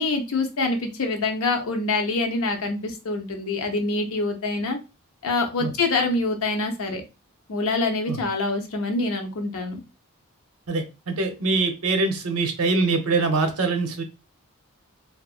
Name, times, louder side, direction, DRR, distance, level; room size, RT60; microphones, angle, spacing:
voice 1, 0.0-4.8 5.2-7.0 7.5-9.8, left 3 dB, 70° left, 4 dB, 0.6 m, -25 dB
voice 2, 10.7-14.0, right 3 dB, 85° right, 6 dB, 0.6 m, -23 dB
2.7 x 2.4 x 2.3 m, 0.28 s
head